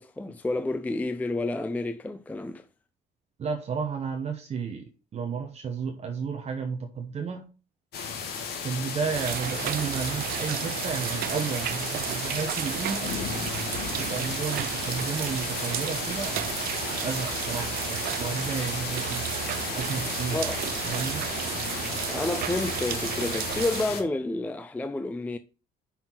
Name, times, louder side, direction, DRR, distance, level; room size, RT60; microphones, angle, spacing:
voice 1, 0.0-2.6 20.3-20.6 22.1-25.4, left 2 dB, 10° left, 0.4 m, -30 dB
voice 2, 3.4-7.5 8.6-13.1 14.0-19.2 19.7-20.4 20.8-21.3, right 6 dB, 40° right, 1.0 m, -32 dB
sound 1, 7.9-24.0, left 6 dB, 70° left, 1.7 m, -34 dB
sound 2, 9.1-23.8, right 14 dB, 60° right, 0.4 m, -33 dB
5.9 x 4.3 x 5.5 m
cardioid pair, 110°, 17 cm